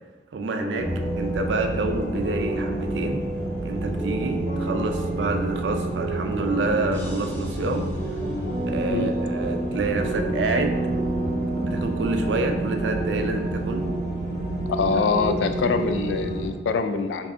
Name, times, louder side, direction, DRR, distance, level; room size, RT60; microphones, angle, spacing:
voice 1, 0.3-0.9 1.2-3.2 3.6-7.9 8.7-10.8 11.6-13.9, right 3 dB, 90° right, 5 dB, 0.4 m, -27 dB
sound 1, 0.6-12.3, right 1 dB, 10° right, 1.4 m, -32 dB
sound 2, 0.8-16.5, right 1 dB, 50° right, 0.8 m, -29 dB
sound 3, 6.9-10.0, equal, 10° left, 0.7 m, -47 dB
voice 2, 14.7-17.3, left 4 dB, 90° left, 9 dB, 0.3 m, -24 dB
4.7 x 2.7 x 2.4 m, 1.2 s
head